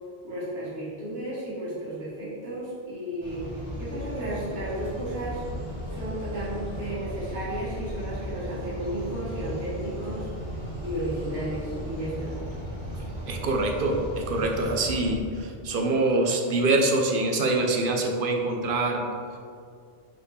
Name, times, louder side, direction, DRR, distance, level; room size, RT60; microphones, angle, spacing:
voice 1, 0.2-5.4 5.9-10.3 10.8-12.4, right 1 dB, 75° right, -9 dB, 2.0 m, -33 dB
sound 1, 3.2-15.1, equal, 25° right, 1.5 m, -36 dB
voice 2, 13.3-19.0, right 2 dB, 60° right, 2 dB, 0.9 m, -25 dB
5.6 x 4.2 x 4.8 m, 2.3 s
omnidirectional pair, 1.0 m